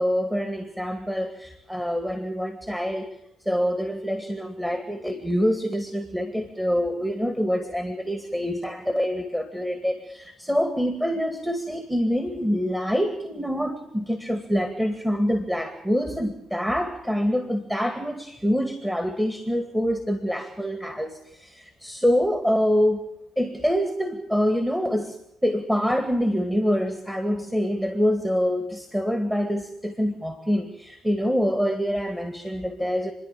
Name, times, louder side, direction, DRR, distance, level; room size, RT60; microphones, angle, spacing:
voice 1, 0.0-3.1 3.5-23.0 23.4-33.1, equal, 5° right, 7 dB, 2.3 m, -25 dB
28.5 x 11.0 x 8.7 m, 0.81 s
cardioid pair, 90°, 0 cm